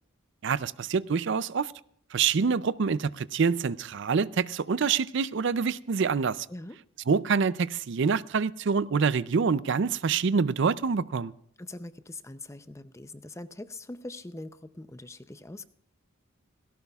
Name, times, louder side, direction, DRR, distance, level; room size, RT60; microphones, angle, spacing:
voice 1, 0.4-1.7 2.1-6.5 7.1-11.3, right 5 dB, 60° right, 0.4 m, -26 dB
voice 2, 11.6-15.6, left 2 dB, 15° left, 0.6 m, -42 dB
18.0 x 17.5 x 2.4 m
head